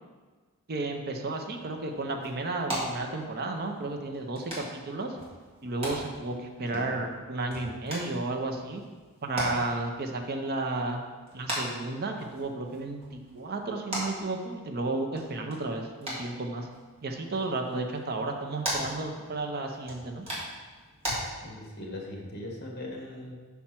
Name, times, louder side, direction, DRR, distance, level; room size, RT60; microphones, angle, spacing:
voice 1, 0.7-5.2 5.6-8.8 9.2-11.0 11.3-16.7 17.0-20.3, right 2 dB, 45° right, 4 dB, 0.6 m, -33 dB
sound 1, 1.3-21.2, right 1 dB, 25° right, 2.0 m, -40 dB
voice 2, 21.4-23.3, left 1 dB, 45° left, 0 dB, 1.4 m, -39 dB
5.8 x 4.3 x 5.9 m, 1.4 s
head